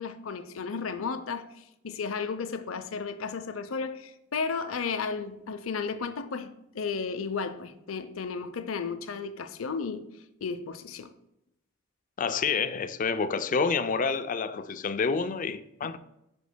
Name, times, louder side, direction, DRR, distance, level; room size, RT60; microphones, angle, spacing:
voice 1, 0.0-10.0 10.4-11.1, left 5 dB, 90° left, 0.6 m, -34 dB
voice 2, 12.2-16.0, left 5 dB, 40° left, 0.4 m, -28 dB
8.3 x 6.0 x 2.2 m
head